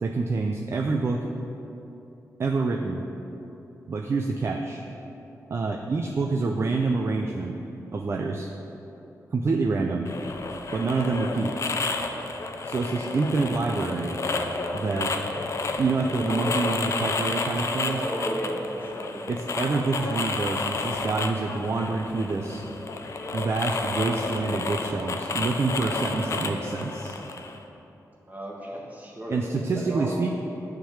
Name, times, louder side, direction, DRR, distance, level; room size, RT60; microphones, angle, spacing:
voice 1, 0.0-1.2 2.4-3.0 3.9-4.8 5.5-7.5 7.9-8.5 9.3-10.1 10.7-11.5 12.6-14.2 14.7-15.2 15.8-18.0 19.3-22.6 23.3-27.2 29.3-30.3, right 3 dB, 40° right, 3 dB, 0.5 m, -27 dB
sound 1, 10.1-27.6, left 3 dB, 50° left, 0.6 m, -31 dB
voice 2, 17.8-19.3 28.3-29.4 29.7-30.1, right 1 dB, 25° right, -3 dB, 1.5 m, -34 dB
10.0 x 3.8 x 7.2 m, 3.0 s
wide cardioid pair, 125°, 6 cm